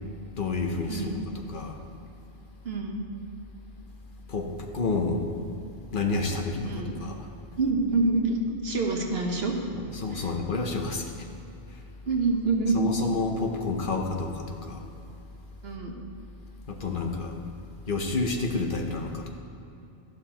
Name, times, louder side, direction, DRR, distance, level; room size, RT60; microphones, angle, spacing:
voice 1, 0.4-1.2 1.5-1.8 4.3-5.2 5.9-7.2 9.7-11.3 12.7-14.8 16.7-17.4 17.9-19.3, left 3 dB, 55° left, 3 dB, 1.0 m, -29 dB
voice 2, 0.9-1.2 2.6-3.0 6.7-6.9 7.6-9.5 10.1-10.3 12.1-12.8 15.6-15.9, right 3 dB, 70° right, 1 dB, 1.4 m, -26 dB
13.0 x 11.5 x 3.0 m, 2.8 s
omnidirectional pair, 1.1 m